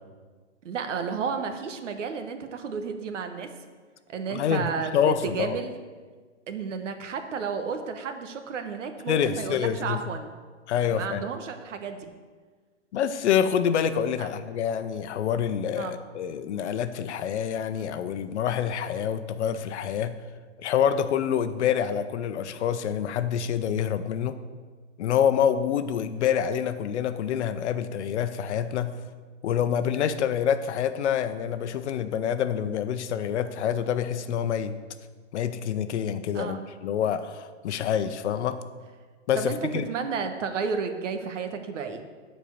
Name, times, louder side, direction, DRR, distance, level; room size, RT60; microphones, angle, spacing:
voice 1, 0.6-3.5 4.1-5.7 6.5-10.3 10.8-12.1 14.2-14.3 15.8-15.9 36.3-36.6 39.3-42.0, right 5 dB, 80° right, 7 dB, 1.2 m, -32 dB
voice 2, 4.3-5.6 9.1-10.0 10.7-11.2 12.9-20.2 20.6-24.4 25.0-28.9 29.4-34.8 35.3-38.6 39.3-39.8, left 8 dB, 65° left, 11 dB, 0.8 m, -27 dB
9.2 x 4.5 x 7.0 m, 1.5 s
hypercardioid pair, 155°, 37 cm